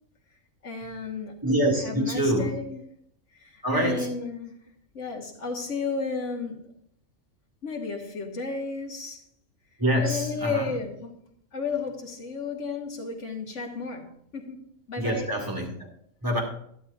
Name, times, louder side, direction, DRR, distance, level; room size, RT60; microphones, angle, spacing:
voice 1, 0.6-1.4 1.8-2.8 3.4-4.5 4.9-6.7 7.6-9.2 10.0-11.1 11.5-14.6 14.9-15.3, left 4 dB, 60° left, 2.1 m, -33 dB
voice 2, 1.4-2.6 3.6-4.1 9.8-10.7 15.0-15.7 16.2-16.4, equal, 15° right, 2.2 m, -25 dB
12.5 x 11.5 x 2.6 m
omnidirectional pair, 1.4 m